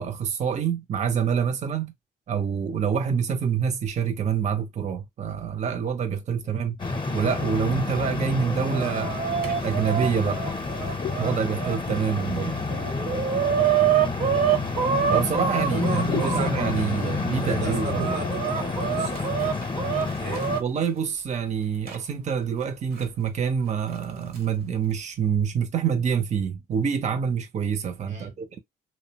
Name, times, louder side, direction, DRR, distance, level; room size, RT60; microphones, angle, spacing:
voice 1, 0.0-1.9 2.3-6.8 7.1-9.2 9.6-10.4 10.9-12.6 15.1-18.2 20.6-28.6, right 7 dB, 40° right, 0.5 m, -26 dB
sound 1, 6.8-20.6, left 3 dB, 25° left, 0.7 m, -29 dB
Chicken rooster, 8.3-11.8 12.3-12.4 12.7-16.7 17.4-20.6 21.9-22.0 23.0-23.1 24.0-24.4, right 8 dB, 60° right, 0.9 m, -26 dB
sound 2, 10.3-10.7 11.0-11.2 11.6-12.8 13.4-14.5 16.1-16.4 17.4-17.8 18.1-18.3 18.6-18.7 19.0-19.2 19.9-20.1, left 9 dB, 45° left, 0.4 m, -37 dB
voice 2, 12.4-12.7 14.3-14.6 15.7-20.5 28.0-28.3, right 3 dB, 80° right, 0.9 m, -37 dB
2.7 x 2.0 x 2.6 m
supercardioid pair, 55°, 18 cm